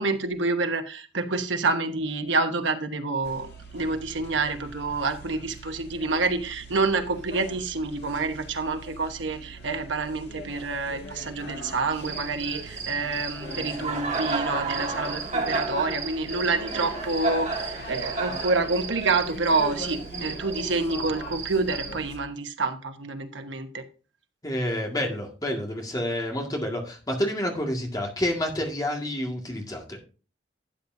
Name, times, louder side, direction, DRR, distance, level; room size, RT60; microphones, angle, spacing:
voice 1, 0.0-3.5 3.7-23.8, right 3 dB, 85° right, 1.1 m, -28 dB
sound 1, 3.2-22.2, right 1 dB, 60° left, 1.7 m, -42 dB
Cricket, 11.9-22.0, right 4 dB, 35° right, 1.7 m, -33 dB
voice 2, 24.4-30.0, left 1 dB, 20° left, 1.9 m, -29 dB
12.5 x 8.5 x 2.7 m
head